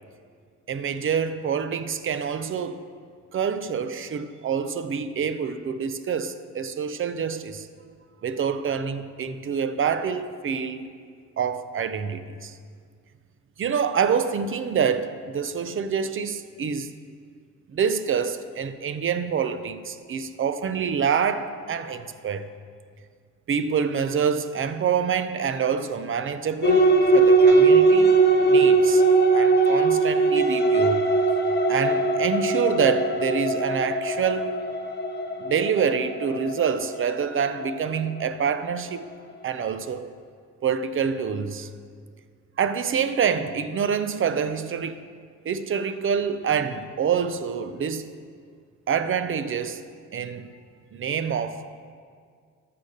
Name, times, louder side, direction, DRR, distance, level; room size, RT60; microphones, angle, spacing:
voice 1, 0.7-2.8 3.3-7.7 8.2-11.0 11.4-12.5 13.6-16.9 17.7-22.5 23.5-28.1 28.5-29.0 29.3-31.0 31.7-34.6 35.4-39.1 39.4-40.1 40.6-41.7 42.6-45.0 45.4-48.1 48.9-49.8 50.1-50.5 50.9-51.6, right 7 dB, 40° right, 0.6 m, -26 dB
sound 1, 26.6-38.6, right 3 dB, 30° left, 0.9 m, -20 dB
14.5 x 5.7 x 6.5 m
cardioid pair, 125°, 33 cm